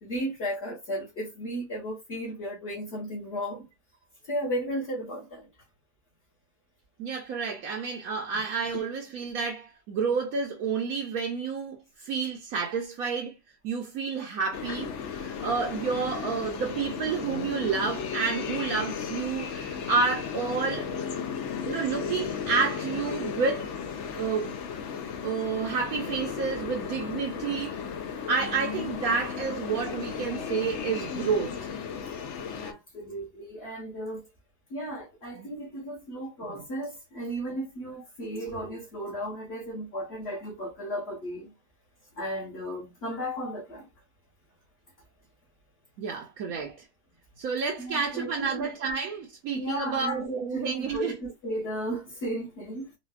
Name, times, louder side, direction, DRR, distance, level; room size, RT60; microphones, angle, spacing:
voice 1, 0.0-3.6 4.3-5.5 32.6-34.3 34.7-41.5 42.1-43.8 47.8-48.7 49.5-52.9, equal, 45° left, 1.2 m, -34 dB
voice 2, 7.0-13.3 13.6-20.9 21.7-23.7 24.2-24.6 25.2-27.8 28.3-31.6 35.3-35.5 36.5-36.6 46.0-46.8 47.4-51.1, right 5 dB, 70° right, 1.1 m, -30 dB
sound 1, 14.5-32.7, left 6 dB, 70° left, 0.7 m, -35 dB
4.0 x 2.3 x 2.3 m
omnidirectional pair, 1.7 m